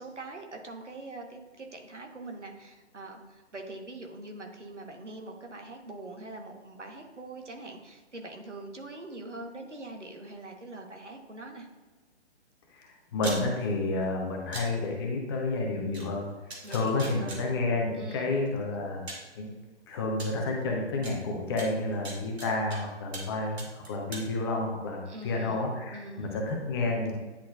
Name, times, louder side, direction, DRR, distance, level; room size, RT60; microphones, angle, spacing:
voice 1, 0.0-11.7 16.6-17.5 17.9-18.4 25.1-25.6 25.9-26.4, right 2 dB, 90° right, 3 dB, 1.2 m, -43 dB
voice 2, 13.1-16.3 16.7-19.0 19.4-19.5 19.9-27.1, left 2 dB, 20° left, 0 dB, 0.8 m, -30 dB
sound 1, 13.2-13.4 14.5-14.6 15.9-16.0 16.5-17.4 18.5-18.6 19.1-19.3 20.2-20.3 21.0-21.1 21.6-22.8 23.1-23.3 23.6-24.2, right 2 dB, 65° right, 1.7 m, -39 dB
9.7 x 4.1 x 2.4 m, 1.2 s
figure-of-eight pair, 140°, 34 cm